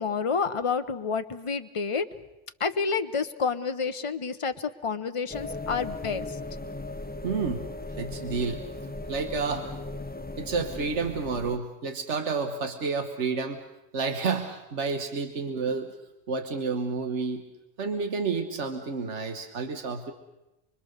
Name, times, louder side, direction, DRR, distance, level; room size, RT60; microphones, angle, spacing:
voice 1, 0.0-2.1 2.6-6.4, left 5 dB, 30° left, 9 dB, 0.9 m, -29 dB
sound 1, 5.3-11.6, left 2 dB, 10° left, 0.7 m, -37 dB
voice 2, 7.2-7.6 8.0-8.6 9.1-9.7 10.4-13.6 13.9-15.9 16.3-17.4 17.8-20.1, right 4 dB, 80° right, 6 dB, 1.6 m, -30 dB
25.0 x 24.5 x 6.6 m, 0.93 s
omnidirectional pair, 1.2 m